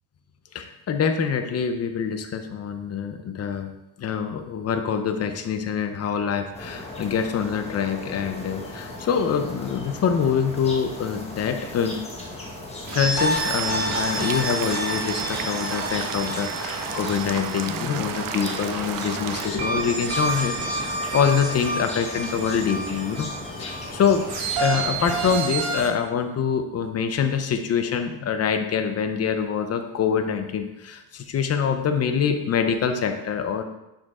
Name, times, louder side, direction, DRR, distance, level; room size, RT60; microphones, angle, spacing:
voice 1, 0.5-3.7 4.0-12.0 12.9-20.6 20.8-23.3 23.6-24.3 24.6-33.6, left 7 dB, 35° left, 7 dB, 0.7 m, -25 dB
sound 1, 6.5-25.4, left 2 dB, 15° left, 1.1 m, -37 dB
sound 2, 12.9-18.5 19.3-25.9, right 2 dB, 65° right, 2.2 m, -29 dB
sound 3, 13.2-19.5, right 8 dB, 50° right, 0.5 m, -33 dB
10.5 x 5.3 x 3.7 m, 0.94 s
cardioid pair, 180°, 44 cm